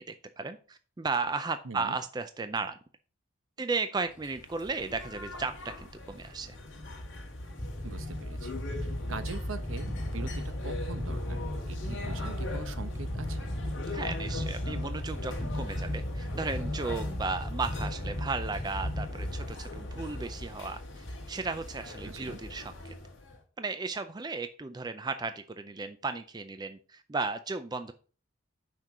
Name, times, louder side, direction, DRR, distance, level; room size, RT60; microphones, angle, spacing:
voice 1, 0.0-2.8 3.6-6.6 13.9-22.9 23.6-27.9, right 4 dB, 20° right, 10 dB, 0.4 m, -35 dB
voice 2, 1.6-2.0 7.8-13.5 22.0-22.4, right 3 dB, 75° right, 10 dB, 0.8 m, -43 dB
sound 1, 4.2-23.4, left 1 dB, 65° left, 1.7 m, -36 dB
5.9 x 4.5 x 6.5 m, 0.40 s
head